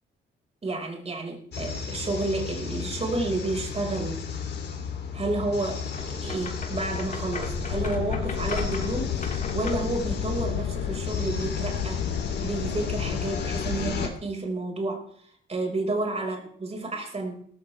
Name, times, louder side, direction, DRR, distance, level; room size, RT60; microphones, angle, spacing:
voice 1, 0.6-4.2 5.1-12.1 12.4-17.5, right 2 dB, 30° right, 1 dB, 5.5 m, -31 dB
sound 1, 1.5-14.1, left 6 dB, 60° left, 3.3 m, -34 dB
sound 2, 5.9-10.0, left 4 dB, 40° left, 3.5 m, -37 dB
sound 3, 7.7-14.1, left 8 dB, 85° left, 1.2 m, -32 dB
17.5 x 15.5 x 3.5 m, 0.62 s
cardioid pair, 90°, 20 cm